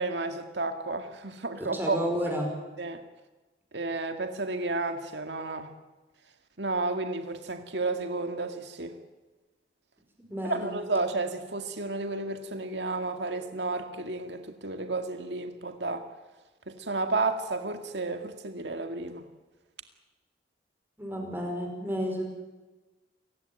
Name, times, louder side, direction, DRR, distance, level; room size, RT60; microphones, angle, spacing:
voice 1, 0.0-2.0 2.8-3.0 3.7-5.7 6.6-9.0 10.5-16.1 16.7-19.2, right 3 dB, 75° right, 6 dB, 2.1 m, -32 dB
voice 2, 1.6-2.5 10.3-10.7 21.0-22.3, equal, 10° right, 1 dB, 5.5 m, -31 dB
28.5 x 16.0 x 9.1 m, 1.2 s
head